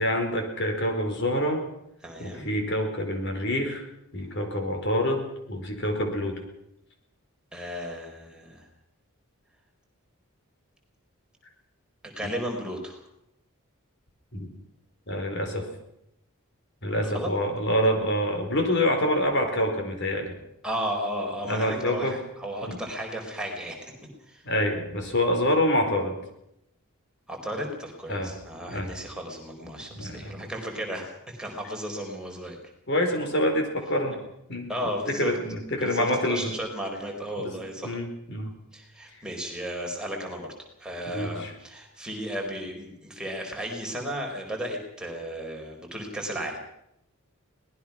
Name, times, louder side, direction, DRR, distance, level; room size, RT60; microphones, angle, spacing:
voice 1, 0.0-1.6 2.2-3.8 4.1-6.4 14.3-14.5 15.1-15.7 16.8-20.3 21.5-22.2 22.6-22.8 24.4-26.2 28.1-28.3 28.7-28.9 29.9-30.4 32.9-34.2 34.5-34.7 35.1-36.6 37.4-37.6 37.8-38.5 41.1-41.5, left 1 dB, 55° left, 4 dB, 4.6 m, -26 dB
voice 2, 2.0-2.5 7.5-8.7 12.0-13.0 17.0-17.3 20.6-23.9 24.3-24.4 27.3-32.6 34.7-35.3 35.8-38.0 38.7-40.5 40.8-46.6, equal, 5° right, 0 dB, 4.2 m, -34 dB
24.5 x 19.5 x 6.0 m, 0.79 s
head